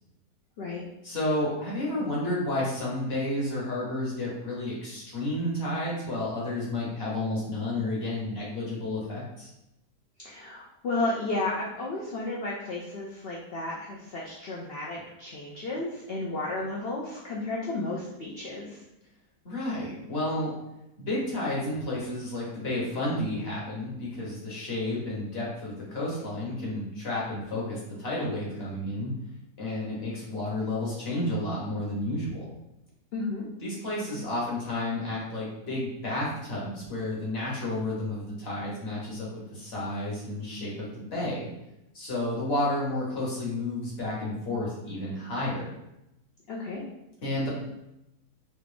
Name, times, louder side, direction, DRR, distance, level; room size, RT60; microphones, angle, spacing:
voice 1, 1.0-9.5 19.4-20.5 21.0-29.1 29.6-32.5 33.6-41.5 41.9-45.7 47.2-47.5, left 1 dB, 45° left, -5 dB, 1.3 m, -31 dB
voice 2, 10.2-18.8 33.1-33.5 46.5-46.8, left 2 dB, 90° left, -4 dB, 0.5 m, -33 dB
3.3 x 2.5 x 3.3 m, 0.90 s
omnidirectional pair, 1.7 m